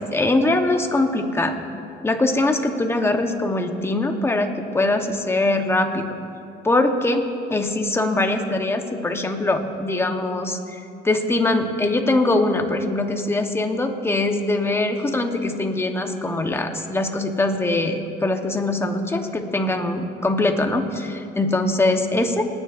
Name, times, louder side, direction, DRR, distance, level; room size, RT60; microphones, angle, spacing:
voice 1, 0.0-1.6 2.0-6.1 6.6-7.2 7.5-22.4, left 2 dB, 15° left, 5 dB, 1.0 m, -22 dB
28.5 x 9.8 x 2.6 m, 2.6 s
cardioid pair, 110°, 17 cm